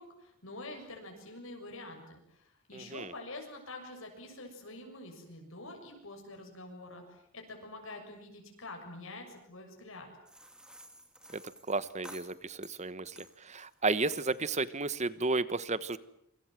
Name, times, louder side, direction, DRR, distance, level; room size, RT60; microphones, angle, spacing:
voice 1, 0.0-10.1, left 2 dB, 65° left, 3 dB, 6.7 m, -46 dB
voice 2, 2.7-3.1 11.3-11.4 11.7-13.1 13.4-16.0, right 3 dB, 30° right, 15 dB, 1.1 m, -32 dB
sound 1, 10.3-12.8 13.2-13.7 14.1-14.5, right 1 dB, 5° right, 2.6 m, -52 dB
27.0 x 25.5 x 7.7 m, 0.74 s
head